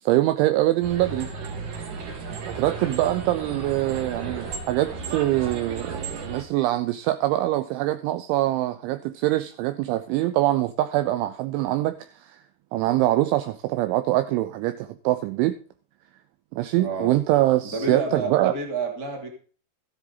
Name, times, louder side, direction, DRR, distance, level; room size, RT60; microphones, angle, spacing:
voice 1, 0.0-1.3 2.5-12.4 12.7-15.6 16.5-18.5, right 15 dB, 80° right, 10 dB, 2.8 m, -24 dB
sound 1, 0.8-6.4, right 4 dB, 55° right, 2.3 m, -34 dB
voice 2, 16.8-17.1 17.6-19.3, right 3 dB, 25° right, 2 dB, 2.4 m, -29 dB
14.0 x 10.0 x 4.0 m, 0.39 s
omnidirectional pair, 5.9 m